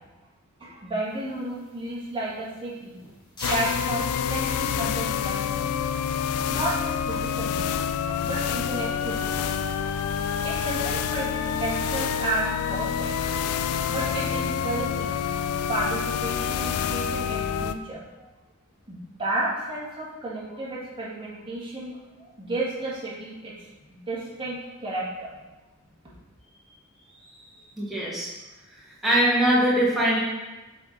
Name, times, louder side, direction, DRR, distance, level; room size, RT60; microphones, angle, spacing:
voice 1, 0.6-3.0 3.5-5.7 6.5-7.6 8.2-9.3 10.4-13.2 13.9-15.1 15.7-18.3 18.9-22.0 22.4-23.5 24.1-25.3, right 2 dB, 25° right, -7 dB, 1.6 m, -32 dB
sound 1, 1.0-6.1, left 1 dB, 20° left, 1.6 m, -42 dB
sound 2, 3.4-17.7, left 7 dB, 90° left, 0.3 m, -27 dB
voice 2, 27.8-28.3 28.7-30.2, right 1 dB, ahead, -7 dB, 1.4 m, -22 dB
6.8 x 3.6 x 3.8 m, 1.1 s
head